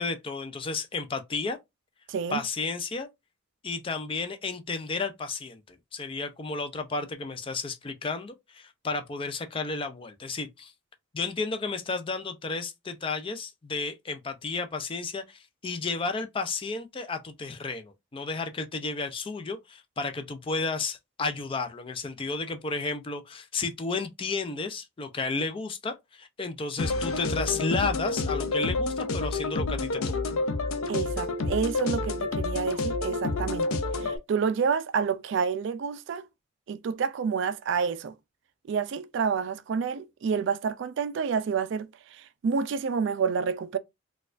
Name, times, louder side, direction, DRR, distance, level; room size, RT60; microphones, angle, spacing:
voice 1, 0.0-1.6 2.3-3.1 3.6-10.7 11.1-30.2, left 4 dB, 25° left, 0.4 m, -32 dB
voice 2, 2.1-2.4 30.9-36.3 36.7-38.1 38.7-43.8, right 6 dB, 60° right, 0.3 m, -29 dB
sound 1, 26.8-34.2, left 3 dB, 80° left, 0.5 m, -29 dB
4.1 x 2.3 x 2.4 m
head